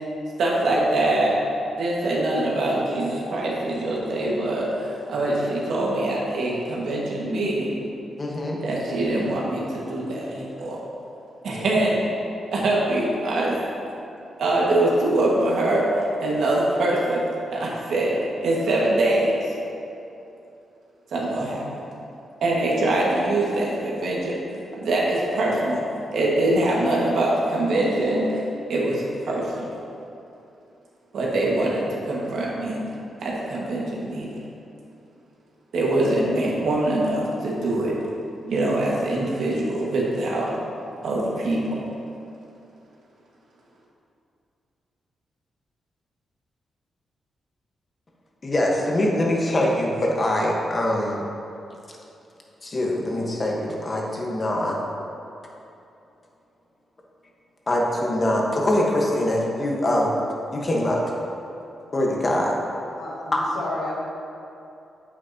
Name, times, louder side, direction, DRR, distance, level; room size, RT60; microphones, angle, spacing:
voice 1, 0.4-1.4 1.8-7.7 8.6-10.8 11.4-12.0 12.5-13.5 14.4-15.9 16.2-17.2 17.5-18.1 18.4-19.5 21.1-21.8 22.4-24.4 24.7-25.8 26.1-28.4 28.7-29.7 31.1-32.8 33.2-34.4 35.7-37.9 38.4-40.5 41.0-41.8, right 1 dB, 80° right, -4 dB, 1.7 m, -23 dB
voice 2, 8.2-9.2 48.4-51.2 52.6-54.8 57.7-60.1 60.5-61.0 61.9-62.6 63.3-63.4, left 1 dB, 35° left, -1 dB, 1.3 m, -23 dB
voice 3, 63.0-63.9, left 2 dB, 90° left, -4 dB, 1.8 m, -32 dB
8.7 x 8.4 x 2.9 m, 2.7 s
cardioid pair, 110°, 0 cm